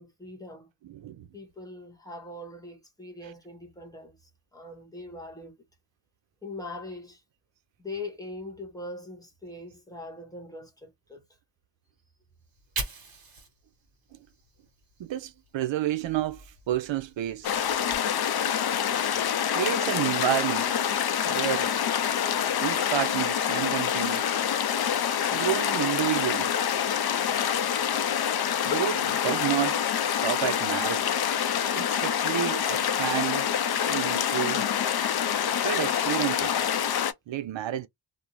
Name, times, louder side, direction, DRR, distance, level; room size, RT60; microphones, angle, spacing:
voice 1, 0.0-0.7 1.3-5.6 6.4-7.2 7.8-11.2 27.2-27.5, left 2 dB, 10° left, 1.0 m, -41 dB
voice 2, 0.8-1.3 14.1-14.2 15.0-17.5 19.5-20.7 21.3-21.7 22.6-24.3 25.3-26.5 28.6-29.8 30.1-31.2 31.7-33.5 33.9-34.7 35.6-36.5 37.3-37.9, right 13 dB, 85° right, 0.5 m, -30 dB
Fire, 12.4-15.5 15.9-18.0, right 3 dB, 50° right, 1.1 m, -42 dB
sound 1, 17.4-37.1, left 9 dB, 60° left, 0.5 m, -26 dB
2.5 x 2.0 x 2.9 m
wide cardioid pair, 105°, 44 cm